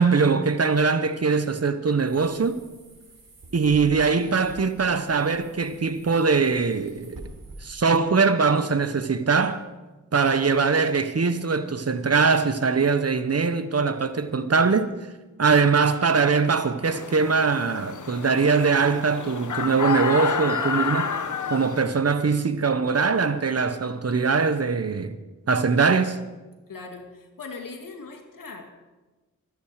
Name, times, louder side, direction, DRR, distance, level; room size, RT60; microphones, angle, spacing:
voice 1, 0.0-2.6 3.5-7.2 7.6-9.6 10.1-14.9 15.4-21.1 21.5-25.2 25.5-26.2, right 5 dB, 50° right, 1.1 m, -22 dB
sound 1, 2.0-7.7, right 2 dB, 85° right, 4.5 m, -46 dB
sound 2, 16.8-21.8, left 6 dB, 65° left, 1.1 m, -29 dB
voice 2, 26.7-28.7, left 4 dB, 80° left, 2.4 m, -39 dB
24.5 x 9.3 x 5.0 m
cardioid pair, 55°, 33 cm